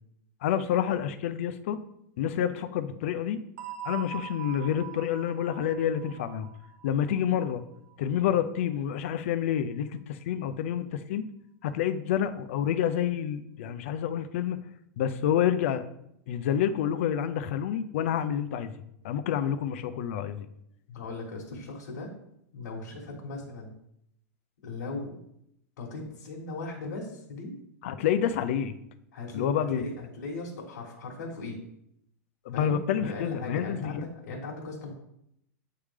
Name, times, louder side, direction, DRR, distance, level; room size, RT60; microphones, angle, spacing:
voice 1, 0.4-1.8 2.2-3.4 3.8-6.5 6.8-7.6 8.0-11.3 11.6-14.6 15.0-15.8 16.3-18.7 19.0-20.5 27.8-28.7 29.3-29.9 32.5-34.1, left 9 dB, 50° left, 10 dB, 0.4 m, -28 dB
sound 1, 3.6-8.2, right 11 dB, 90° right, 0.6 m, -43 dB
voice 2, 20.9-22.1 22.5-23.8 24.6-25.2 25.8-27.6 29.1-31.6 32.5-34.9, left 3 dB, 85° left, -3 dB, 1.5 m, -38 dB
8.5 x 3.3 x 3.5 m, 0.77 s
supercardioid pair, 175°, 9 cm